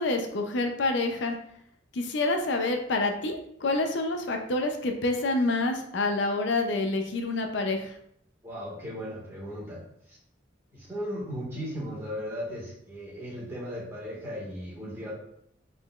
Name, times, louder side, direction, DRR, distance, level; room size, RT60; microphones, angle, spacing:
voice 1, 0.0-1.4 1.9-7.9, left 2 dB, 65° left, 4 dB, 0.6 m, -27 dB
voice 2, 8.4-9.8 10.1-10.2 10.7-15.1, equal, 15° right, -6 dB, 1.7 m, -36 dB
5.2 x 3.9 x 2.4 m, 0.71 s
head